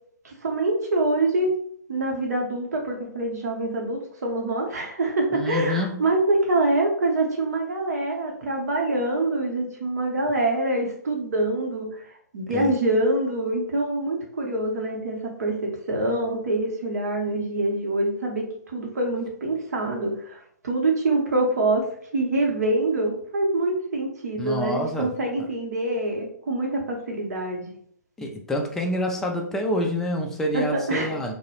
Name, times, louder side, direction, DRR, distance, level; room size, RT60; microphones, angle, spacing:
voice 1, 0.2-1.5 1.9-12.0 12.3-21.8 22.1-27.7 30.5-31.3, right 2 dB, 60° right, 1 dB, 0.8 m, -25 dB
voice 2, 5.3-6.0 12.5-12.7 24.4-25.1 28.2-31.3, equal, 5° left, 0 dB, 0.3 m, -27 dB
2.2 x 2.0 x 3.0 m, 0.63 s
figure-of-eight pair, 125°, 10 cm